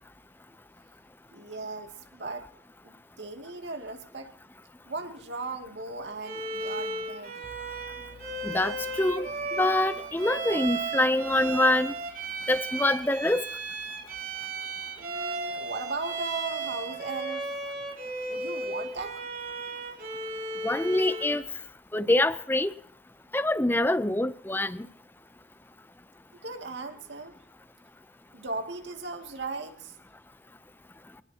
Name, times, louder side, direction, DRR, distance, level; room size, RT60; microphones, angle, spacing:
voice 1, 1.3-2.5 2.8-4.3 4.9-7.3 15.0-17.5 18.3-19.2 26.4-27.3 28.3-29.9, right 3 dB, 75° right, 2.4 m, -37 dB
Bowed string instrument, 6.2-21.5, right 3 dB, 50° right, 3.5 m, -35 dB
sound 1, 7.4-18.7, right 1 dB, 70° left, 4.8 m, -58 dB
voice 2, 8.4-9.3 9.6-11.9 12.5-13.4 20.6-21.4 21.9-22.7 23.3-24.9, left 1 dB, 10° left, 0.6 m, -25 dB
25.0 x 19.5 x 2.9 m
head